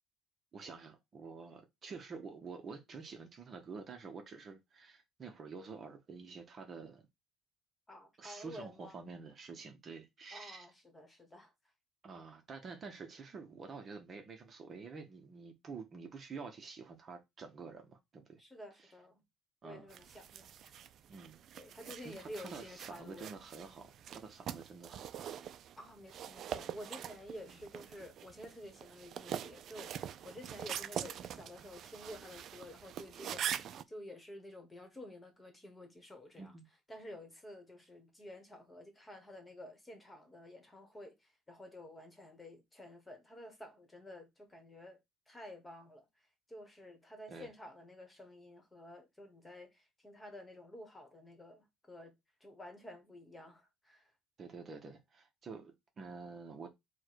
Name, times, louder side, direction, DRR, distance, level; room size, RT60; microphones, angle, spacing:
voice 1, 0.5-7.0 8.2-10.7 12.0-18.4 19.6-19.9 21.1-21.4 22.0-25.4 27.5-27.6 36.4-36.7 47.3-47.5 54.4-56.7, right 4 dB, 35° right, 0.8 m, -48 dB
voice 2, 7.9-9.0 10.3-11.5 18.4-19.2 19.6-20.8 21.5-23.3 25.8-36.6 36.9-45.0 45.3-54.1, left 1 dB, 15° left, 1.3 m, -51 dB
sound 1, 19.9-33.8, right 9 dB, 55° right, 0.3 m, -44 dB
4.6 x 2.2 x 4.5 m
cardioid pair, 120°, 0 cm